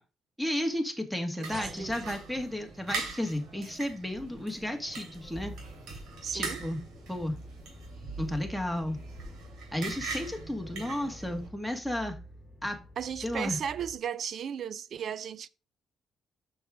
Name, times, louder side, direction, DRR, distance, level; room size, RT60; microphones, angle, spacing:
voice 1, 0.4-5.5 6.3-6.8 7.1-7.4 8.2-9.0 9.7-12.2 12.6-12.8 13.2-13.6, left 1 dB, 5° right, 1.9 m, -33 dB
sound 1, 1.4-11.5, right 4 dB, 80° right, 3.1 m, -42 dB
sound 2, 1.5-6.4, right 3 dB, 35° right, 1.2 m, -51 dB
voice 2, 1.6-2.1 6.2-6.6 13.0-15.5, right 8 dB, 60° right, 0.5 m, -35 dB
sound 3, 5.3-13.9, equal, 25° left, 2.8 m, -48 dB
6.9 x 6.5 x 3.7 m
cardioid pair, 90°, 0 cm